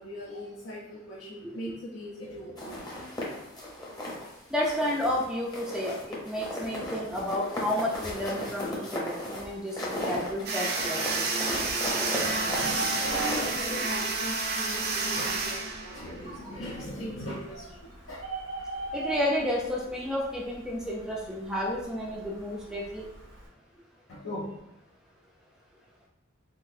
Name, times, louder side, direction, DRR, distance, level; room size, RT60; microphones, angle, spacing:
voice 1, 0.0-3.0 12.2-18.2 24.1-24.7, equal, 70° left, -6 dB, 0.6 m, -39 dB
voice 2, 1.4-1.8 4.5-12.6 18.9-23.1, left 1 dB, 5° right, -4 dB, 0.4 m, -32 dB
sound 1, 2.6-4.3 4.6-5.2 5.5-13.5, left 1 dB, 20° left, 0.8 m, -36 dB
sound 2, 10.5-16.4, right 3 dB, 50° right, 0.5 m, -30 dB
Bird, 12.3-23.5, right 3 dB, 85° right, 1.1 m, -41 dB
3.8 x 2.5 x 2.6 m, 0.87 s
head